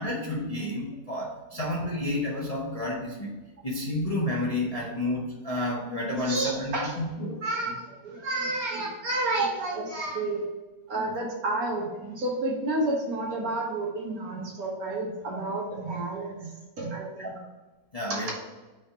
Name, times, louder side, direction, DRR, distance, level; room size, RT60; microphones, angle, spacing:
voice 1, 0.0-3.3 3.6-7.4 17.2-17.3 17.9-18.3, left 1 dB, 30° left, -4 dB, 0.8 m, -30 dB
voice 2, 6.2-6.9 7.4-10.5 10.9-16.5 16.8-17.4 18.1-18.3, right 2 dB, 65° right, -3 dB, 1.9 m, -30 dB
4.8 x 3.6 x 5.6 m, 1.2 s
omnidirectional pair, 1.7 m